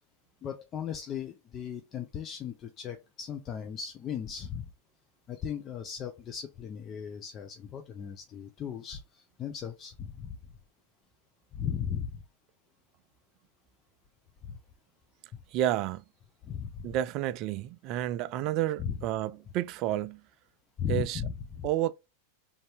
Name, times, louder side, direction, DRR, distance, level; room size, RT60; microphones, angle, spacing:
voice 1, 0.4-4.7 5.3-9.0 9.4-10.4 11.5-12.2 16.5-16.7 18.8-19.0 20.8-21.6, left 8 dB, 30° left, 0.5 m, -36 dB
voice 2, 15.5-16.0 16.8-20.2 20.9-21.2 21.6-21.9, right 13 dB, 40° right, 0.3 m, -30 dB
3.4 x 2.6 x 3.3 m
figure-of-eight pair, 90°, 0 cm